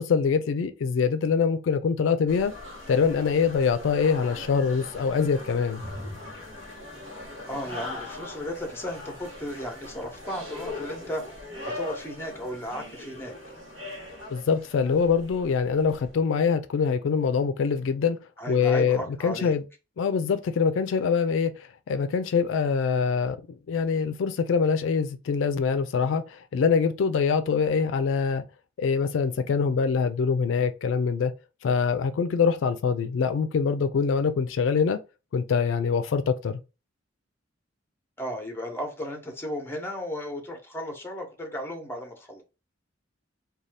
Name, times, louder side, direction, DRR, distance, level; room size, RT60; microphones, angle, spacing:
voice 1, 0.0-2.5 2.9-5.8 14.3-18.2 18.5-19.6 20.0-23.4 23.7-28.4 28.8-31.3 31.6-35.0 35.3-36.6, left 5 dB, 75° left, 0.3 m, -24 dB
sound 1, 2.3-16.1, left 2 dB, 85° right, 0.9 m, -40 dB
voice 2, 7.5-11.2 11.6-13.3 18.4-19.5 38.2-42.4, equal, 10° left, 0.8 m, -34 dB
2.6 x 2.3 x 3.2 m
head